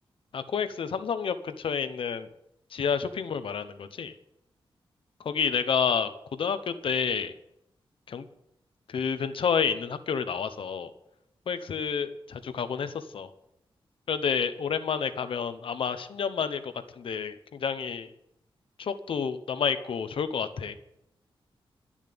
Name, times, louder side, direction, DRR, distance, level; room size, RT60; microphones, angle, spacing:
voice 1, 0.3-2.3 2.7-4.1 5.2-7.3 8.1-8.3 8.9-10.9 11.5-13.3 14.1-18.1 18.8-20.7, left 6 dB, 70° left, 11 dB, 0.9 m, -29 dB
12.0 x 7.3 x 8.7 m, 0.81 s
wide cardioid pair, 180°, 9 cm